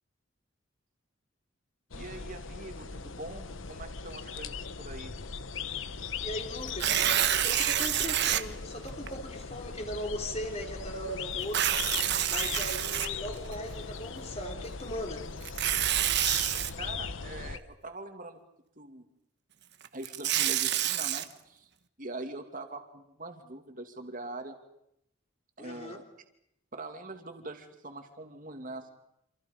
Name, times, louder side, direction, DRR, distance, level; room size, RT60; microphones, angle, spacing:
sound 1, 1.9-17.6, left 5 dB, 70° left, 1.1 m, -39 dB
voice 1, 1.9-5.1 16.8-18.4 18.8-19.1 19.9-21.7 22.0-24.6 25.6-26.0 26.7-28.9, right 2 dB, 40° right, 5 dB, 2.6 m, -43 dB
voice 2, 6.2-7.0 7.4-11.8 12.3-15.2 25.6-26.0, equal, 30° left, 3 dB, 3.8 m, -39 dB
Tearing, 6.7-8.4 9.1-9.2 11.4-13.5 15.4-16.7 19.8-21.2, right 11 dB, 55° right, 1.2 m, -28 dB
29.0 x 27.0 x 5.3 m, 0.77 s
head